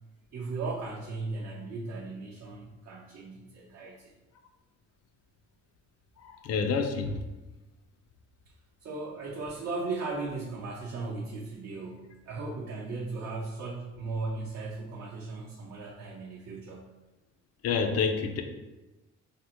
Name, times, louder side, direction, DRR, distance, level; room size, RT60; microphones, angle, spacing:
voice 1, 0.3-4.1 8.8-16.9, right 3 dB, 60° right, -4 dB, 0.6 m, -37 dB
voice 2, 6.2-7.2 17.6-18.4, left 5 dB, 55° left, 6 dB, 0.4 m, -28 dB
3.4 x 2.0 x 2.8 m, 1.1 s
cardioid pair, 90°, 30 cm